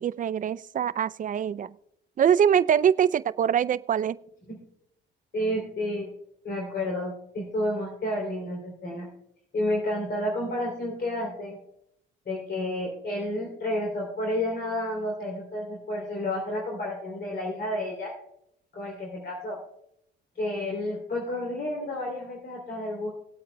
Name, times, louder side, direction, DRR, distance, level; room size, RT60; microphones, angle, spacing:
voice 1, 0.0-1.7 2.2-4.2, right 8 dB, 40° right, 17 dB, 0.4 m, -23 dB
voice 2, 5.3-6.1 6.4-9.1 9.5-11.6 12.2-18.1 18.7-19.6 20.3-23.1, left 1 dB, 55° left, -1 dB, 2.9 m, -30 dB
19.0 x 8.4 x 2.2 m, 0.74 s
cardioid pair, 90°, 20 cm